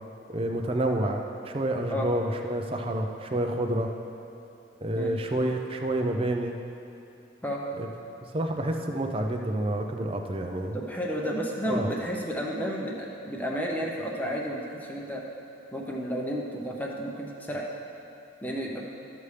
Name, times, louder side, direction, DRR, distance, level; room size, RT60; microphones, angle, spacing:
voice 1, 0.3-3.9 4.8-6.5 7.7-7.9 8.3-10.8 11.6-11.9, right 1 dB, 30° right, 3 dB, 0.5 m, -28 dB
voice 2, 10.7-15.2 15.7-17.7 18.4-18.8, equal, 10° left, -2 dB, 0.7 m, -32 dB
12.5 x 6.9 x 3.3 m, 2.8 s
head